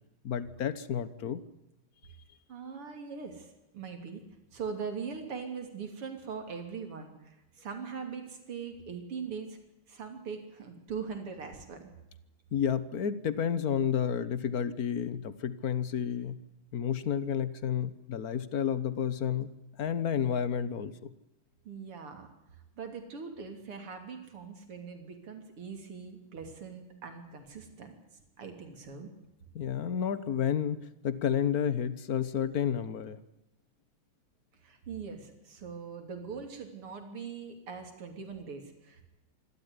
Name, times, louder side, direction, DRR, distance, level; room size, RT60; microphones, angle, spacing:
voice 1, 0.2-1.4 12.5-16.4 16.7-19.5 19.8-21.1 29.5-33.2, left 8 dB, 50° left, 15 dB, 1.5 m, -31 dB
voice 2, 2.5-4.2 4.5-9.6 9.9-11.9 21.7-22.3 22.8-28.0 28.4-29.1 34.6-39.0, right 5 dB, 80° right, 5 dB, 4.0 m, -41 dB
26.0 x 13.0 x 9.8 m, 0.96 s
omnidirectional pair, 2.4 m